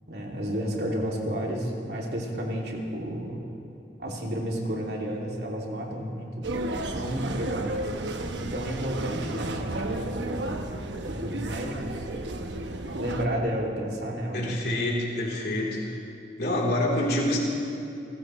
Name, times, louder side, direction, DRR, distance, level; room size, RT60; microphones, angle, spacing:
voice 1, 0.1-3.4 4.0-6.5 6.8-7.9 8.4-10.6 11.0-12.1 12.9-14.6, equal, 70° right, -2 dB, 2.7 m, -31 dB
sound 1, 6.4-13.3, right 2 dB, 85° right, 1.0 m, -33 dB
voice 2, 14.3-16.0 16.4-17.4, left 1 dB, 65° left, -3 dB, 3.4 m, -27 dB
29.5 x 15.0 x 3.2 m, 2.8 s
head